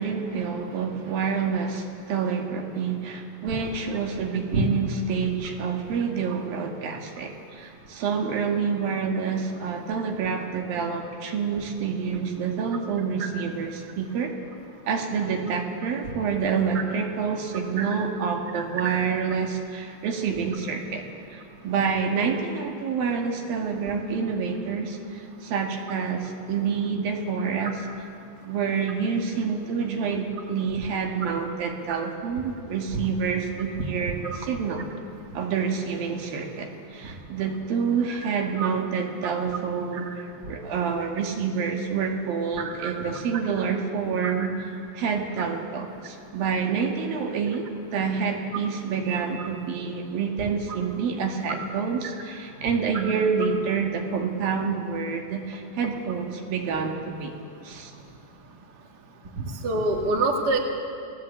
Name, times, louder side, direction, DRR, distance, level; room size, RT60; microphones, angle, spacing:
voice 1, 0.0-14.3 14.9-21.1 21.3-27.9 28.4-34.9 35.3-57.3 57.6-57.9, right 6 dB, 80° right, 2 dB, 3.8 m, -28 dB
voice 2, 18.5-18.9 31.2-31.3 38.1-38.2 38.6-38.7 42.8-42.9 44.2-44.3 49.1-49.2 59.4-60.6, right 3 dB, 30° right, 1 dB, 2.5 m, -26 dB
28.0 x 18.5 x 8.5 m, 2.5 s
omnidirectional pair, 4.1 m